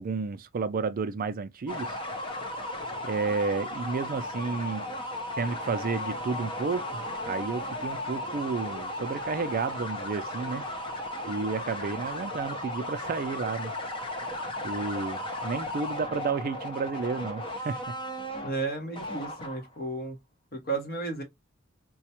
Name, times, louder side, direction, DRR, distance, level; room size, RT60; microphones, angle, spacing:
voice 1, 0.0-2.0 3.0-4.8 5.4-10.6 11.3-13.7 14.6-17.8, right 4 dB, 45° right, 0.4 m, -31 dB
sound 1, 1.7-19.8, left 1 dB, 25° left, 0.7 m, -35 dB
voice 2, 18.3-20.2 20.5-21.2, right 3 dB, 50° left, 1.2 m, -33 dB
4.0 x 2.3 x 2.8 m
head